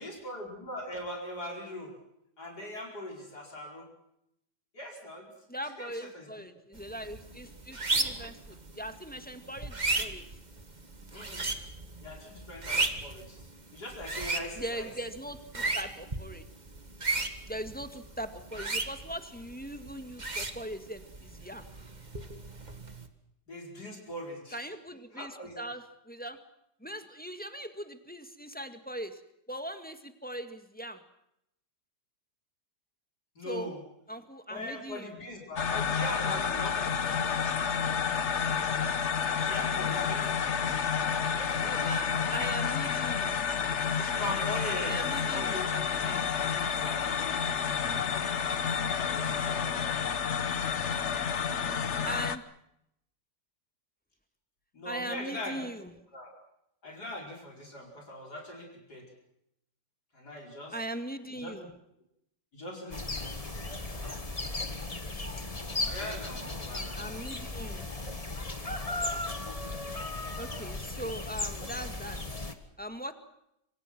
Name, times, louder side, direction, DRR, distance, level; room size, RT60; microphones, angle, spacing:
voice 1, 0.0-1.9 2.4-3.9 4.7-5.3 5.8-6.3 11.1-11.5 12.0-13.4 13.7-14.9 23.5-24.6 25.1-25.6 33.4-33.8 34.5-37.3 39.3-41.0 41.3-42.3 44.0-48.5 49.0-50.1 54.7-55.7 56.1-56.3 56.8-59.1 60.1-60.7 61.4-61.6 62.5-63.3 65.8-67.0, left 1 dB, 65° left, 0 dB, 5.4 m, -41 dB
voice 2, 5.5-10.2 14.6-16.4 17.4-21.7 24.5-26.4 26.8-29.2 29.5-31.0 33.4-33.7 34.1-35.1 39.7-40.1 41.6-43.4 44.9-45.6 52.0-52.4 54.8-55.9 60.7-61.7 66.9-67.9 70.4-72.2 72.8-73.1, right 1 dB, 5° left, 8 dB, 1.8 m, -40 dB
sound 1, 6.8-23.1, right 3 dB, 25° right, 2.0 m, -36 dB
sound 2, 35.6-52.4, left 6 dB, 45° left, 1.3 m, -30 dB
sound 3, 62.9-72.5, left 2 dB, 20° left, 1.7 m, -36 dB
26.0 x 26.0 x 6.1 m, 0.79 s
omnidirectional pair, 1.8 m